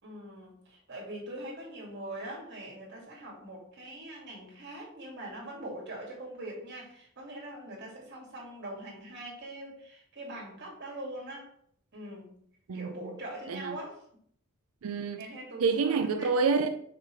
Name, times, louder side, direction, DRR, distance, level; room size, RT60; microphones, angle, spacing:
voice 1, 0.0-11.5 11.9-12.3 12.7-14.0 15.2-16.3, right 1 dB, 50° right, 2.4 m, -42 dB
voice 2, 14.8-15.2 15.6-16.7, right 5 dB, 70° right, 0.4 m, -27 dB
5.9 x 3.3 x 5.6 m
head